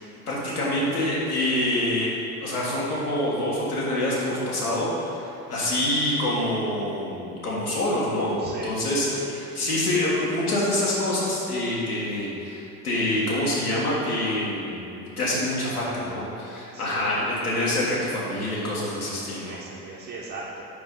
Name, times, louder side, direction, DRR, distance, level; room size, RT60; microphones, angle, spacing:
voice 1, 0.3-2.1 2.4-8.3 8.6-19.5, left 1 dB, 85° left, -7 dB, 1.4 m, -26 dB
voice 2, 8.4-8.8 16.7-17.2 19.2-20.6, right 3 dB, 45° right, -5 dB, 1.0 m, -38 dB
6.7 x 5.3 x 3.7 m, 2.8 s
figure-of-eight pair, 55°, 44 cm